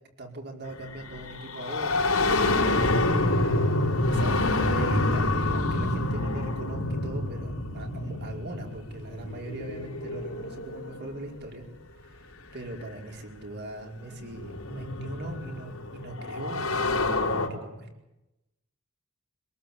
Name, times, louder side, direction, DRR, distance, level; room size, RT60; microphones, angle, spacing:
voice 1, 0.2-3.1 4.1-4.4 4.7-11.7 12.0-17.9, right 1 dB, 50° right, 2 dB, 4.9 m, -40 dB
sound 1, 0.7-11.3 12.6-12.7 13.7-17.5, left 2 dB, 75° left, 4.4 m, -27 dB
23.5 x 22.0 x 8.7 m, 0.93 s
head